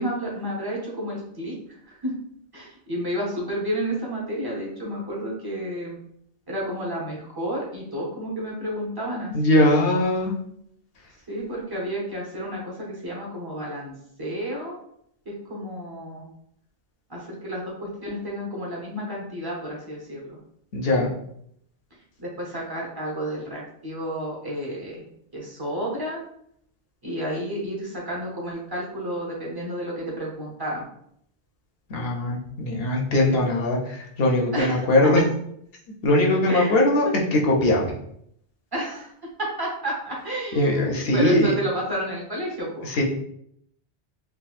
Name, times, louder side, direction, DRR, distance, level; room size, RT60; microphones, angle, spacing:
voice 1, 0.0-2.1 2.5-6.0 6.5-9.5 11.3-14.8 15.2-16.3 17.1-20.4 22.2-25.0 25.3-26.2 27.0-30.9 33.3-33.4 34.5-35.2 36.3-36.8 37.0-37.1 38.7-39.1 39.4-42.9, equal, 25° right, -4 dB, 0.7 m, -31 dB
voice 2, 9.3-10.3 20.7-21.1 31.9-35.2 36.0-37.8 40.6-41.5 42.8-43.0, left 1 dB, 65° left, -1 dB, 0.8 m, -21 dB
3.6 x 2.2 x 2.4 m, 0.71 s
omnidirectional pair, 1.1 m